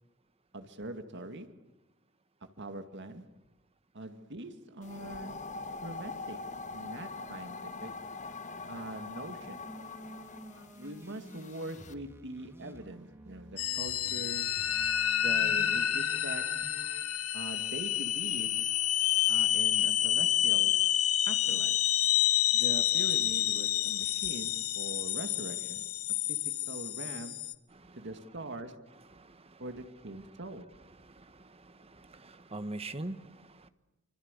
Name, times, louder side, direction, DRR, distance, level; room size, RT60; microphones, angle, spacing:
voice 1, 0.5-1.5 2.6-3.3 3.9-5.5 5.8-8.0 8.7-9.6 10.7-14.5 15.2-16.6 17.3-18.7 19.3-20.8 21.3-21.8 22.5-25.8 26.3-27.4 28.0-28.9 29.6-30.8, right 1 dB, 55° right, 2.2 m, -43 dB
sound 1, 4.8-11.9, left 3 dB, 35° left, 1.3 m, -43 dB
sound 2, 9.6-17.0, right 1 dB, 10° right, 2.8 m, -51 dB
sound 3, 13.6-27.5, left 12 dB, 85° left, 1.2 m, -29 dB
voice 2, 27.7-28.1 28.9-29.6 30.2-30.3 30.8-33.7, right 2 dB, 30° right, 1.3 m, -44 dB
26.0 x 25.5 x 8.4 m
head